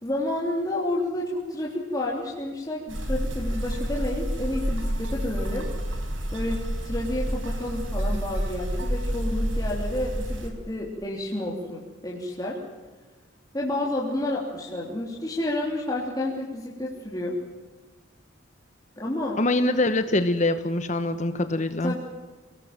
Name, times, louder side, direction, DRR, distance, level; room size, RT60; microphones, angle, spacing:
voice 1, 0.0-5.7 6.3-12.6 13.5-17.4 19.0-19.4 21.8-22.0, left 1 dB, 20° left, -4 dB, 3.2 m, -30 dB
sound 1, 2.9-10.5, equal, 75° right, 4.9 m, -29 dB
voice 2, 19.4-21.9, left 2 dB, 35° left, 10 dB, 1.0 m, -24 dB
25.5 x 18.0 x 7.5 m, 1.3 s
head